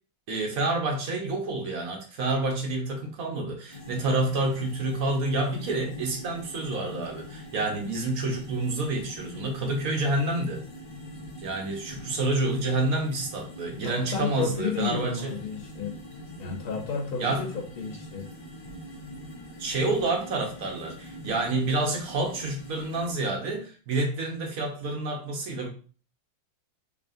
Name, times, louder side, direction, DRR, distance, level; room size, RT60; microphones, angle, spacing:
voice 1, 0.3-10.6 11.4-15.3 17.2-17.5 19.6-25.7, right 2 dB, 55° right, 1.1 m, -28 dB
sound 1, 3.7-23.1, left 1 dB, 40° left, 0.5 m, -43 dB
voice 2, 13.8-16.0 16.4-18.3, left 6 dB, 85° left, 1.9 m, -32 dB
4.0 x 3.4 x 2.6 m
omnidirectional pair, 2.3 m